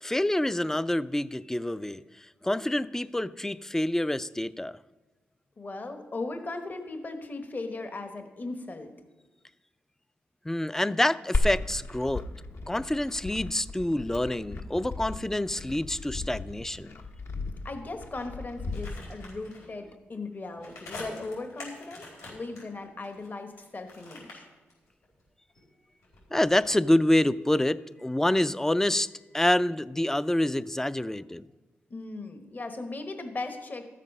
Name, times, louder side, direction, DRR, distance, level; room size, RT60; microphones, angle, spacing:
voice 1, 0.0-2.0 2.4-4.8 10.5-12.3 12.7-16.9 26.3-29.1 29.3-31.4, left 1 dB, 10° left, 17 dB, 0.4 m, -27 dB
voice 2, 5.6-8.9 17.6-24.5 31.9-33.9, left 3 dB, 40° left, 6 dB, 1.2 m, -38 dB
Glass, 11.3-19.3, left 2 dB, 60° left, 1.2 m, -34 dB
sound 1, 18.7-19.7 20.5-23.6 23.9-25.2 25.5-27.1 27.4-27.5, left 2 dB, 85° left, 4.4 m, -45 dB
13.0 x 7.4 x 5.4 m, 1.2 s
cardioid pair, 65°, 5 cm